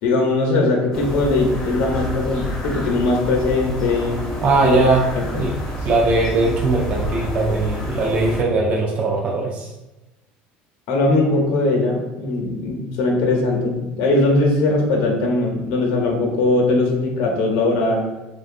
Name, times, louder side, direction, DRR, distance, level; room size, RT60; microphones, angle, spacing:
voice 1, 0.0-4.8 5.2-5.5 10.9-18.0, left 2 dB, 75° left, 0 dB, 0.7 m, -20 dB
sound 1, 0.9-8.4, equal, 15° left, 0.5 m, -29 dB
voice 2, 4.4-5.0 5.3-5.5 5.8-9.7, right 3 dB, 35° right, -2 dB, 0.4 m, -19 dB
2.5 x 2.2 x 2.5 m, 1.0 s
cardioid pair, 145°, 4 cm